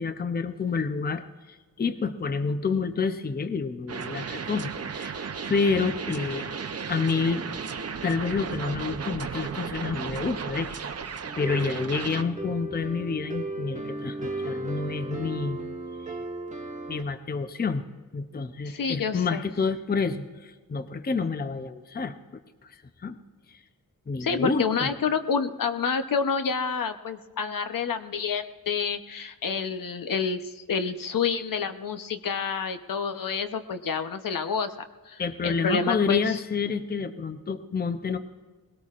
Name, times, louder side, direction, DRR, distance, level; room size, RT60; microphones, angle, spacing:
voice 1, 0.0-5.2 5.5-6.5 6.9-7.5 8.0-10.7 11.4-15.6 16.9-17.8 18.1-22.1 22.7-23.2 23.5-23.6 24.1-24.9 35.2-38.2, left 5 dB, 25° left, 10 dB, 0.6 m, -28 dB
sound 1, 3.9-12.2, right 6 dB, 45° right, 0.7 m, -34 dB
sound 2, 11.2-17.0, right 2 dB, 20° right, 1.4 m, -35 dB
voice 2, 18.6-19.4 24.2-34.7 35.0-36.4, left 5 dB, 70° left, 9 dB, 0.9 m, -28 dB
20.5 x 17.5 x 2.5 m, 1.3 s
wide cardioid pair, 120°, 35 cm